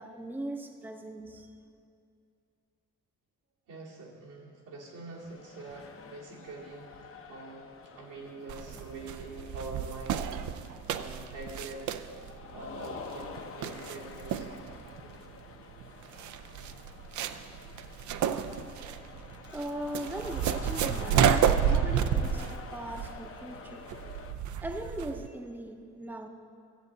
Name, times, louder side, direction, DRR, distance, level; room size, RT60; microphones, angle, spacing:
voice 1, 0.0-1.5 19.4-23.8 24.6-26.3, right 1 dB, 5° right, 4 dB, 0.7 m, -39 dB
voice 2, 3.7-11.9 12.5-14.5, right 3 dB, 90° right, -5 dB, 2.5 m, -45 dB
sound 1, 5.1-24.3, left 5 dB, 45° left, 0.8 m, -48 dB
sound 2, 8.5-25.3, right 8 dB, 75° right, 0.5 m, -31 dB
15.0 x 7.9 x 3.9 m, 2.4 s
cardioid pair, 90°, 30 cm